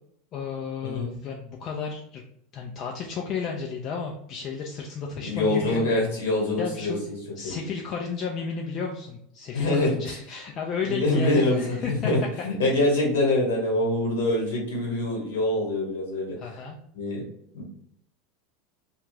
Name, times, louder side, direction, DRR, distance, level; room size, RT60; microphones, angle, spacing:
voice 1, 0.3-2.2 2.5-5.9 6.6-7.0 7.4-12.1 16.4-16.8, left 5 dB, 40° left, 0 dB, 0.4 m, -33 dB
voice 2, 5.2-6.9 7.4-7.6 9.5-10.2 10.9-16.3 16.9-17.2 17.5-17.6, left 2 dB, 70° left, -2 dB, 1.2 m, -25 dB
2.4 x 2.3 x 3.3 m, 0.72 s
figure-of-eight pair, 80°, 0 cm